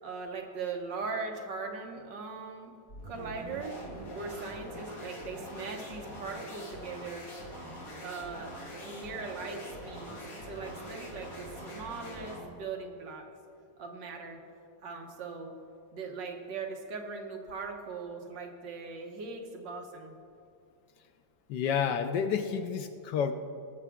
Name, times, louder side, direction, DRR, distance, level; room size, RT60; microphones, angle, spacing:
voice 1, 0.0-2.7 3.0-3.7 4.1-7.2 8.0-8.5 8.8-13.2 13.8-14.4 14.8-15.5 15.9-20.1, right 4 dB, 70° right, 2 dB, 1.7 m, -40 dB
sound 1, 2.9-12.5, equal, 45° left, 2.6 m, -44 dB
voice 2, 21.5-23.3, left 7 dB, 70° left, 8 dB, 1.1 m, -30 dB
20.5 x 7.1 x 3.6 m, 2.5 s
omnidirectional pair, 2.1 m